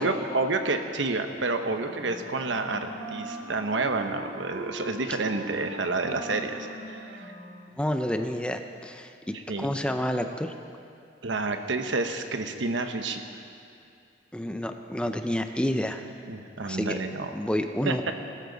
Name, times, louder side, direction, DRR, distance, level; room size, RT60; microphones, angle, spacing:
voice 1, 0.0-7.3 9.3-9.7 11.2-13.2 16.3-17.3 17.8-17.9, right 3 dB, 75° right, 6 dB, 1.0 m, -29 dB
Wind instrument woodwind instrument, 1.8-7.8, right 2 dB, 50° right, 2.7 m, -41 dB
voice 2, 7.8-10.5 14.3-16.0 16.7-17.0 17.3-18.1, equal, 5° left, 6 dB, 0.5 m, -29 dB
20.0 x 13.0 x 4.0 m, 2.5 s
head